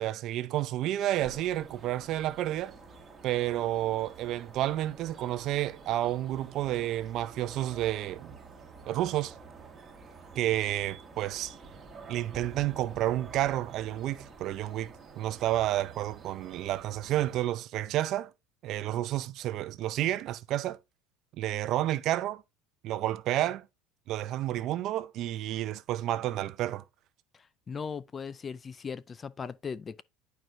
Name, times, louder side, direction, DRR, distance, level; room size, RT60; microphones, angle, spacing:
voice 1, 0.0-2.7 3.2-8.4 8.8-9.3 10.4-11.5 12.1-18.3 18.6-20.8 21.4-22.4 22.8-23.7 24.1-26.8, right 13 dB, 50° right, 0.5 m, -30 dB
sound 1, 1.2-17.4, right 4 dB, 25° right, 1.4 m, -49 dB
voice 2, 27.7-30.0, left 6 dB, 25° left, 0.4 m, -38 dB
11.0 x 4.6 x 2.6 m
cardioid pair, 135°, 0 cm